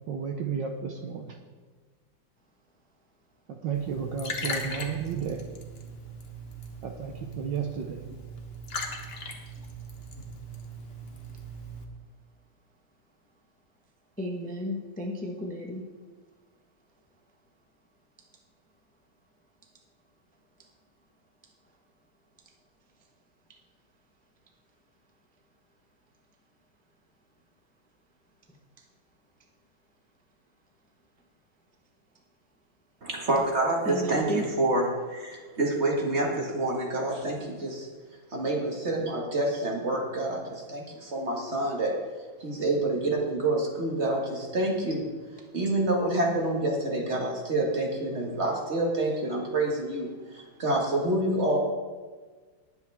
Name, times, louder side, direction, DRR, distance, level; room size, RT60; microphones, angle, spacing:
voice 1, 0.1-1.4 3.5-5.5 6.8-8.0, right 6 dB, 65° right, 5 dB, 1.3 m, -32 dB
Liquid, 3.7-11.8, equal, 35° left, 1.1 m, -39 dB
voice 2, 14.2-15.8 33.9-34.4, equal, 10° left, 1 dB, 0.5 m, -33 dB
voice 3, 33.0-37.9 38.3-41.9 42.4-45.1 45.5-51.6, right 2 dB, 30° right, 0 dB, 1.9 m, -27 dB
19.0 x 7.8 x 3.6 m, 1.4 s
omnidirectional pair, 2.4 m